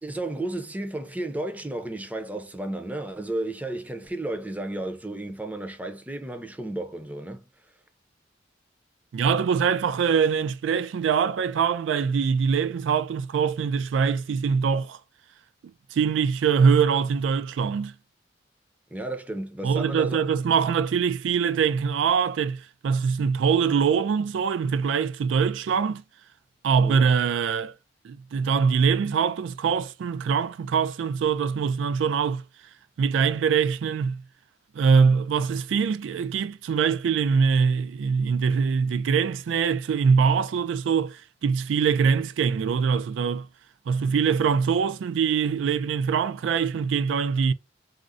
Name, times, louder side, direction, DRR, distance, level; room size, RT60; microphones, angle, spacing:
voice 1, 0.0-7.5 18.9-20.2 26.8-27.1, right 1 dB, 10° right, 0.5 m, -33 dB
voice 2, 9.1-15.0 15.9-17.9 19.6-26.0 26.6-27.7 28.0-32.4 33.0-34.2 34.7-43.5 43.9-47.5, right 6 dB, 90° right, 0.3 m, -23 dB
3.6 x 2.0 x 2.5 m
head